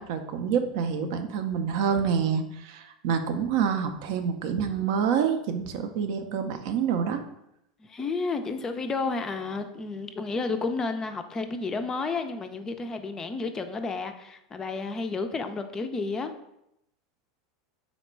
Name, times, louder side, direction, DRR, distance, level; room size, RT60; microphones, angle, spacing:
voice 1, 0.0-7.2, right 7 dB, 60° right, 7 dB, 0.4 m, -27 dB
voice 2, 7.8-16.3, left 4 dB, 25° left, 7 dB, 0.3 m, -31 dB
4.0 x 2.2 x 4.4 m, 0.83 s
hypercardioid pair, 85°, 2 cm